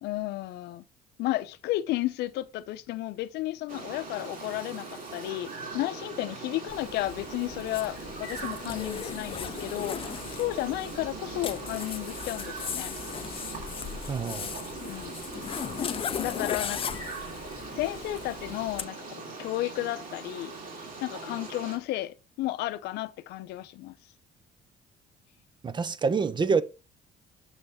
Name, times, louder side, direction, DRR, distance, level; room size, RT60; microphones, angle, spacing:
voice 1, 0.0-0.8 1.2-10.0 10.3-13.0 14.8-15.2 16.2-17.2 17.8-20.5 21.0-23.9 26.5-26.6, left 16 dB, 80° left, 0.6 m, -33 dB
sound 1, 3.7-21.8, right 3 dB, 55° right, 2.7 m, -40 dB
Zipper (clothing), 6.7-18.9, left 8 dB, 35° left, 0.4 m, -38 dB
voice 2, 14.1-14.6 25.6-26.6, right 5 dB, 25° right, 0.6 m, -26 dB
6.4 x 5.6 x 4.1 m
cardioid pair, 110°, 17 cm